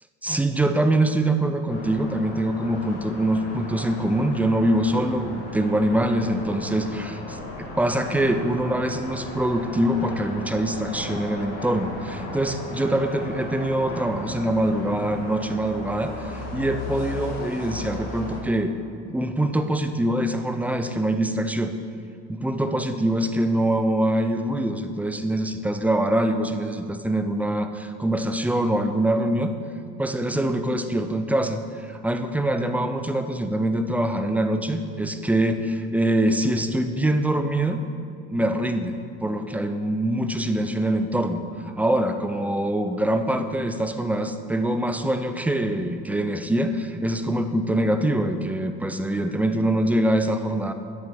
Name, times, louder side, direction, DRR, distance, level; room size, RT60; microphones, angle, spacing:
voice 1, 0.2-18.7 19.1-21.7 22.3-29.5 30.0-31.6 31.9-37.8 38.3-41.4 41.8-50.7, right 1 dB, 5° right, 8 dB, 0.5 m, -24 dB
sound 1, 1.7-18.4, left 2 dB, 60° left, 2.3 m, -36 dB
7.8 x 7.3 x 5.5 m, 2.3 s
supercardioid pair, 105°, 29 cm